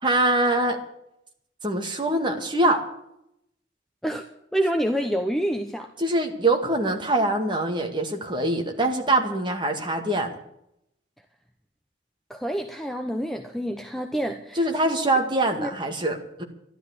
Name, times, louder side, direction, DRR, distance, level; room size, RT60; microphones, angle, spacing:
voice 1, 0.0-0.8 1.6-2.8 6.0-10.3 14.5-16.4, right 2 dB, 25° right, 4 dB, 2.0 m, -23 dB
voice 2, 4.5-5.9 12.3-14.6 15.6-15.7, equal, ahead, 4 dB, 0.9 m, -27 dB
12.5 x 12.0 x 8.5 m, 0.78 s
head